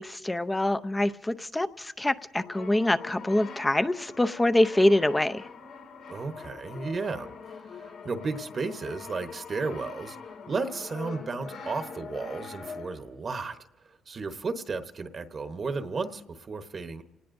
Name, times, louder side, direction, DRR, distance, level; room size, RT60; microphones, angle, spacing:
voice 1, 0.0-5.5, left 1 dB, 15° left, 12 dB, 0.6 m, -25 dB
Brass instrument, 2.3-13.2, left 5 dB, 80° left, 2.2 m, -43 dB
voice 2, 6.1-13.6 14.1-17.0, right 4 dB, 40° right, 8 dB, 1.0 m, -34 dB
27.5 x 19.0 x 2.6 m, 0.96 s
cardioid pair, 90°, 0 cm